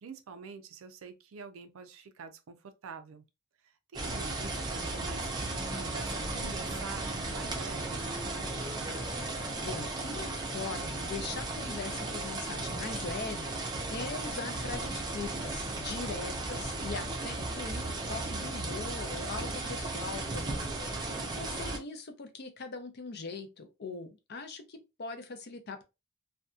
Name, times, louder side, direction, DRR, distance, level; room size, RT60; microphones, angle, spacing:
voice 1, 0.0-3.2 3.9-8.0, right 5 dB, 85° right, 0.4 m, -46 dB
sound 1, 3.9-21.8, right 2 dB, 20° right, 0.5 m, -35 dB
sound 2, 5.4-18.5, right 1 dB, 5° right, 0.9 m, -51 dB
voice 2, 9.6-13.6 13.9-25.8, left 4 dB, 55° left, 0.5 m, -41 dB
2.6 x 2.2 x 2.3 m
head